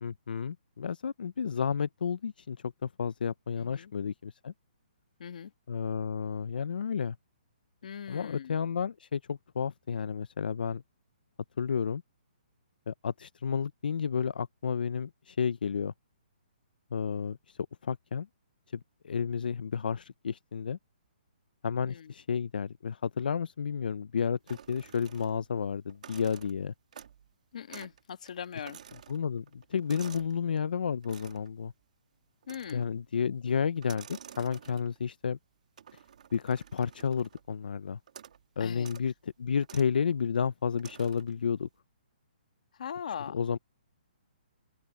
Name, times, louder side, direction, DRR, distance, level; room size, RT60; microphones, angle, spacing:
voice 1, 0.0-4.5 5.7-7.2 8.1-10.8 11.6-12.0 12.9-15.9 16.9-18.3 18.7-20.8 21.6-26.7 29.1-31.7 32.7-35.4 36.3-38.0 38.6-41.7 43.3-43.6, left 6 dB, 70° left, 0.6 m, -31 dB
voice 2, 3.6-3.9 5.2-5.5 7.8-8.6 21.9-22.1 27.5-28.8 32.5-32.9 38.6-38.9 42.7-43.4, left 8 dB, 50° left, 1.5 m, -40 dB
sound 1, 24.5-25.5 25.9-27.3 27.7-28.0 28.3-30.4 31.0-31.5 32.4-33.0 33.8-35.1 35.8-37.5 38.1-38.4 38.8-39.1 39.6-39.9 40.8-41.4, right 8 dB, 50° right, 1.6 m, -51 dB
open air
hypercardioid pair, 175°, 5 cm